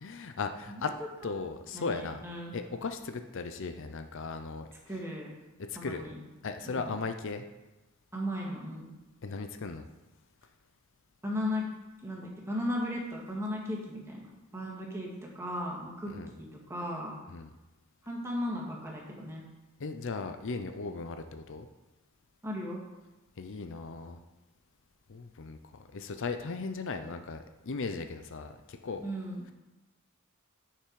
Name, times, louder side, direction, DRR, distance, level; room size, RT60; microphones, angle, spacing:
voice 1, 0.0-0.9 1.2-2.2 2.5-4.7 5.7-6.1 6.4-7.5 9.2-9.9 16.1-16.3 17.3-17.5 19.8-21.7 23.4-24.2 25.1-25.6 25.9-29.1, left 4 dB, 65° left, 8 dB, 0.6 m, -37 dB
voice 2, 1.7-2.5 4.9-5.3 5.8-6.2 6.6-6.9 8.1-8.9 11.2-11.6 12.0-14.3 14.5-15.1 15.4-17.1 18.1-19.4 22.4-22.8 29.0-29.5, left 1 dB, 15° right, -3 dB, 2.0 m, -36 dB
10.0 x 5.9 x 4.8 m, 1.1 s
head